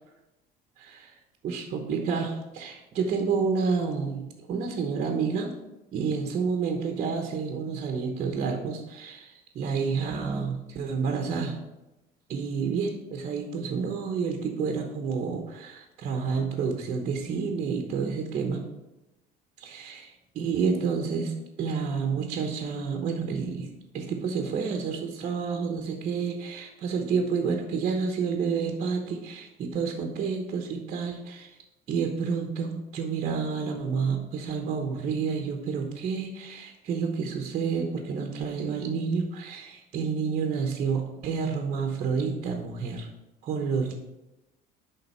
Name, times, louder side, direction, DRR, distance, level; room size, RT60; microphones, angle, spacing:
voice 1, 0.8-1.2 1.4-5.5 5.9-11.6 12.3-18.6 19.6-23.7 23.9-31.5 31.9-43.1 43.4-44.0, right 5 dB, 40° right, 3 dB, 1.0 m, -29 dB
10.5 x 3.8 x 5.6 m, 0.97 s
cardioid pair, 160°, 19 cm